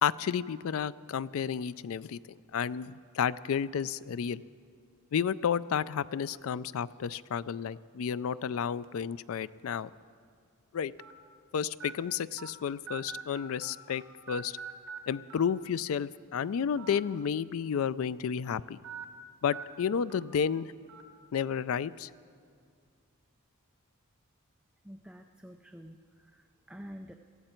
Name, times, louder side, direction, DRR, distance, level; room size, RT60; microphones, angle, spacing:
voice 1, 0.0-2.2 2.5-4.4 5.1-9.9 10.7-10.9 11.5-14.0 14.3-14.6 15.1-18.8 19.4-20.7 21.3-22.1, left 7 dB, 65° left, 17 dB, 0.3 m, -31 dB
sound 1, 8.8-9.1 9.8-9.9 11.0-11.1 11.8-11.9 12.4-12.5 12.9-14.0 14.3-15.0 15.3-15.4 16.7-17.0 17.4-17.5 18.8-19.0 19.5-19.6 20.1-20.2 20.9-21.0, right 6 dB, 80° right, 1.5 m, -43 dB
voice 2, 24.8-27.1, equal, 5° right, 4 dB, 0.4 m, -48 dB
19.0 x 14.0 x 4.4 m, 2.1 s
head